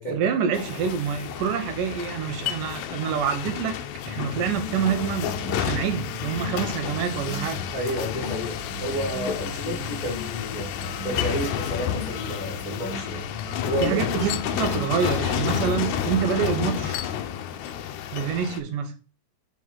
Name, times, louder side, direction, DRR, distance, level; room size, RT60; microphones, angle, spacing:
voice 1, 0.1-3.8 4.1-7.6 9.7-9.9 13.8-17.0 18.1-18.9, right 7 dB, 80° right, 2.6 m, -27 dB
sound 1, 0.5-18.6, left 10 dB, 75° left, 1.7 m, -30 dB
sound 2, 4.0-16.9, left 1 dB, 15° left, 0.8 m, -38 dB
voice 2, 7.7-10.7 11.0-13.3 13.6-14.3, equal, 60° left, 0.4 m, -31 dB
6.0 x 4.8 x 3.6 m
omnidirectional pair, 3.7 m